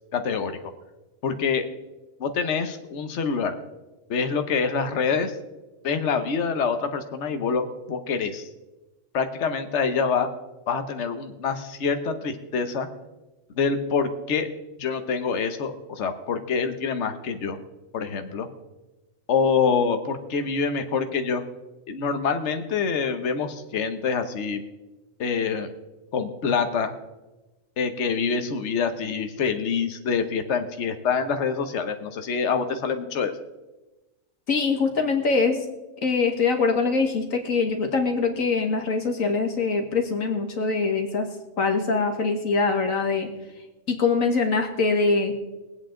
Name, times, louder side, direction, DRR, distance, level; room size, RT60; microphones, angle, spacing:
voice 1, 0.1-0.5 1.2-1.6 2.2-3.6 4.1-5.3 5.8-7.6 7.9-8.5 9.1-10.3 10.7-12.9 13.6-14.5 14.8-17.6 17.9-18.5 19.3-21.4 21.9-24.6 25.2-25.7 26.1-26.9 27.8-33.3, left 5 dB, 60° left, 7 dB, 1.3 m, -26 dB
voice 2, 34.5-35.6 36.0-41.3 41.6-43.3 43.9-45.3, left 4 dB, 80° left, 4 dB, 2.1 m, -23 dB
22.0 x 8.5 x 3.8 m, 1.1 s
omnidirectional pair, 1.4 m